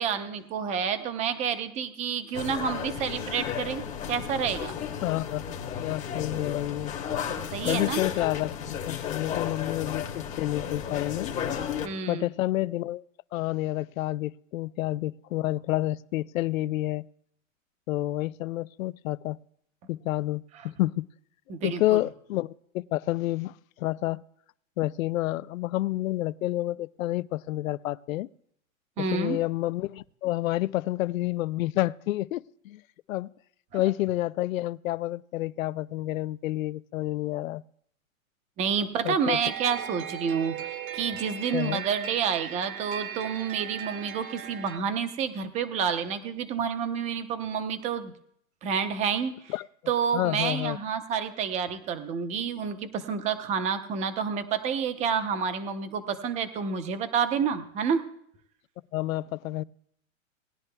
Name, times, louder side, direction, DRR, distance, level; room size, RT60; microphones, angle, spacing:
voice 1, 0.0-4.8 7.5-8.0 11.8-12.3 20.6-20.7 21.5-22.0 29.0-29.4 33.7-33.8 38.6-48.1 48.6-49.5 49.9-58.0, right 7 dB, 15° right, 0.6 m, -29 dB
sound 1, 2.3-11.9, left 8 dB, 20° left, 0.9 m, -33 dB
voice 2, 5.0-5.4 5.8-6.9 7.7-8.6 8.9-11.3 12.1-13.0 13.3-17.0 17.9-19.4 19.9-21.1 21.6-24.2 24.8-28.3 29.0-32.8 33.1-33.3 33.7-37.6 39.0-39.4 41.5-41.8 49.5-49.7 50.1-50.8 58.9-59.6, left 16 dB, 70° left, 0.5 m, -29 dB
sound 2, 39.4-44.8, right 9 dB, 70° right, 1.6 m, -38 dB
19.0 x 10.5 x 2.2 m
hypercardioid pair, 140°, 42 cm